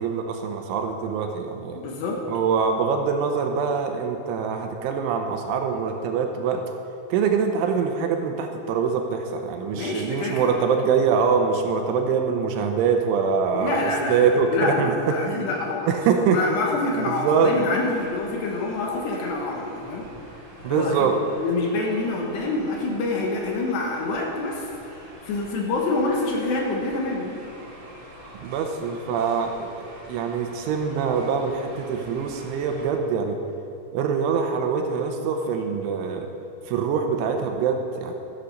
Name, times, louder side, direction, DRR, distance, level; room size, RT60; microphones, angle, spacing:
voice 1, 0.0-1.8 2.3-6.6 7.1-15.0 15.2-15.5 15.9-16.4 16.9-17.5 20.6-21.2 28.3-33.4 33.9-36.3 36.7-38.2, right 6 dB, 80° right, 4 dB, 3.1 m, -24 dB
voice 2, 1.7-2.2 9.7-10.5 13.5-15.9 16.3-20.1 20.7-21.1 21.4-27.3, left 2 dB, 70° left, 0 dB, 3.1 m, -27 dB
sound 1, 17.5-32.9, right 1 dB, 40° right, 2.7 m, -46 dB
14.5 x 8.4 x 6.6 m, 3.0 s
omnidirectional pair, 5.8 m